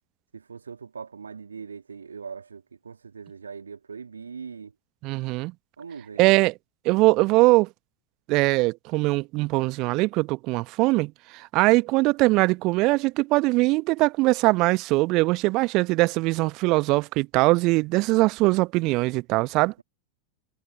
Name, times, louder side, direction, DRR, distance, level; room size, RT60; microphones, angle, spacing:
voice 1, 0.3-4.7 5.8-6.4, right 5 dB, 75° right, 2.1 m, -41 dB
voice 2, 5.0-5.5 6.2-6.5 6.8-7.7 8.3-19.7, right 22 dB, 40° right, 0.8 m, -21 dB
figure-of-eight pair, 90°, 0 cm